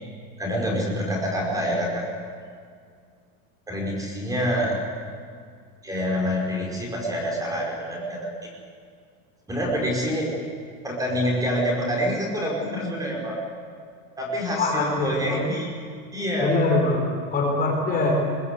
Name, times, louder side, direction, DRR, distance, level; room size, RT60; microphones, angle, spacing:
voice 1, 0.4-2.0 3.7-4.7 5.8-8.5 9.5-10.3 10.8-13.4 14.2-15.7 16.1-16.5, equal, 10° right, -1 dB, 4.9 m, -26 dB
voice 2, 14.5-15.5 16.4-18.1, left 3 dB, 20° left, -1 dB, 4.4 m, -23 dB
22.0 x 20.5 x 8.3 m, 2.1 s
supercardioid pair, 155°, 42 cm